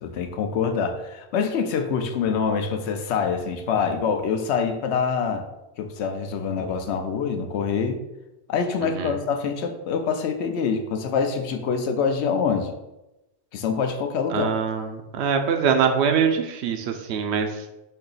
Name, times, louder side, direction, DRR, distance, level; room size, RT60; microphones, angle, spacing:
voice 1, 0.0-5.4 5.8-8.0 8.5-12.7 13.5-14.5, left 6 dB, 85° left, 6 dB, 0.9 m, -25 dB
voice 2, 8.8-9.2 14.3-17.6, right 6 dB, 85° right, 6 dB, 0.9 m, -23 dB
4.5 x 2.8 x 3.9 m, 0.98 s
omnidirectional pair, 1.1 m